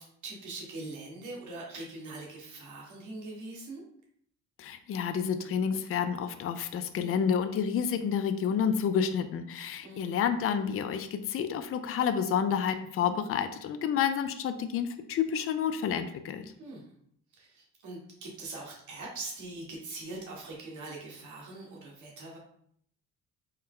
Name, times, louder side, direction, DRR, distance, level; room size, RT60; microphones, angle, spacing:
voice 1, 0.0-3.8 9.8-10.1 16.6-16.9 17.3-22.4, right 2 dB, 75° right, -2 dB, 1.5 m, -42 dB
voice 2, 4.6-16.4, left 7 dB, 50° left, 9 dB, 0.4 m, -29 dB
4.4 x 2.1 x 3.7 m, 0.67 s
cardioid pair, 90°, 30 cm